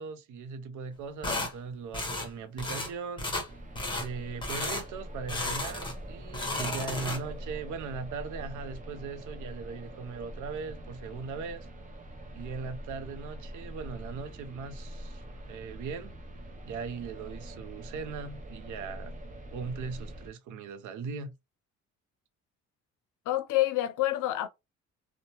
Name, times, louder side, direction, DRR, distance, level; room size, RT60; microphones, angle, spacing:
voice 1, 0.0-3.2 3.9-11.7 12.3-16.1 16.6-19.1 19.5-21.3, right 5 dB, 80° right, 0.6 m, -39 dB
sound 1, 1.2-1.5 1.9-2.3 2.6-2.9 3.2-3.5 3.7-4.1 4.4-4.8 5.3-6.0 6.3-7.4, left 2 dB, 15° left, 0.9 m, -33 dB
sound 2, 3.5-20.3, equal, 25° right, 0.6 m, -44 dB
voice 2, 23.3-24.5, left 15 dB, 85° left, 0.5 m, -27 dB
2.7 x 2.1 x 2.8 m
cardioid pair, 90°, 30 cm